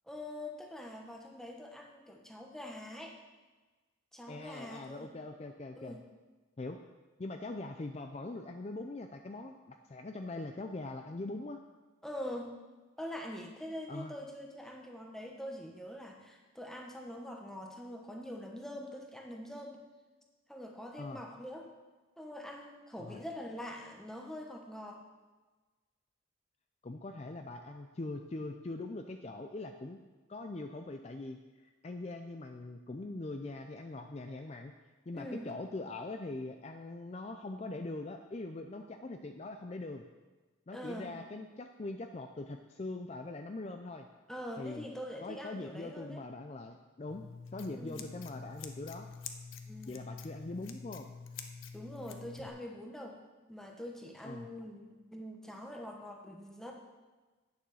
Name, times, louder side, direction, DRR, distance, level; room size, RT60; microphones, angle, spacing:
voice 1, 0.1-3.2 4.1-5.1 5.7-6.0 12.0-12.5 13.0-19.8 20.5-21.7 22.2-25.0 35.1-35.5 40.7-41.1 44.3-46.2 47.8-48.1 49.7-50.0 51.7-53.2 53.5-56.7, left 1 dB, ahead, 1 dB, 1.0 m, -44 dB
voice 2, 4.3-6.0 6.6-6.8 7.2-11.6 13.9-14.1 21.0-21.2 23.0-23.2 26.8-30.0 30.3-34.7 35.1-40.1 40.7-44.1 44.6-44.9 45.2-47.2 47.5-49.1 49.9-51.1 54.2-54.5, left 2 dB, 30° left, 5 dB, 0.4 m, -42 dB
Scissors, 47.1-52.5, left 5 dB, 85° left, 0.8 m, -47 dB
9.4 x 6.9 x 6.3 m, 1.3 s
head